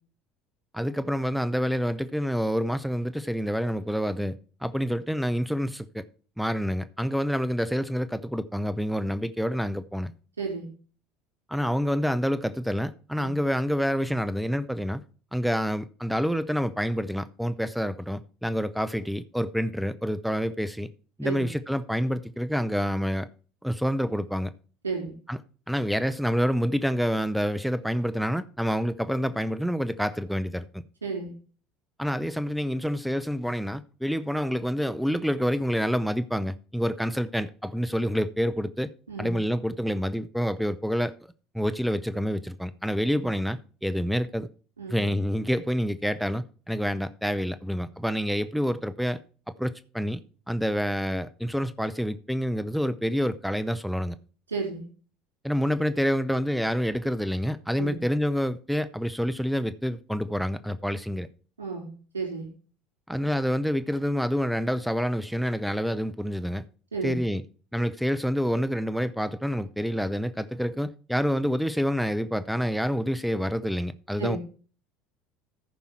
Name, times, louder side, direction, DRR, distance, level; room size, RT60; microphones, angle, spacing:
voice 1, 0.7-6.0 6.4-10.1 11.5-15.0 15.3-20.9 21.2-23.3 23.6-24.5 25.3-25.4 25.7-30.8 32.0-38.9 39.2-41.1 41.5-44.5 44.9-49.2 49.6-50.2 50.5-54.2 55.4-61.3 63.1-66.6 67.0-67.4 67.7-74.4, equal, ahead, 0.7 m, -27 dB
voice 2, 10.4-10.7 13.2-13.3 21.2-21.5 24.8-25.1 31.0-31.3 39.1-39.3 43.1-43.2 44.8-45.0 54.5-54.8 57.8-58.0 61.6-61.9 62.1-62.5 66.9-67.2 74.2-74.4, right 4 dB, 80° right, 4.0 m, -32 dB
14.5 x 5.4 x 4.6 m
figure-of-eight pair, 65°, 0 cm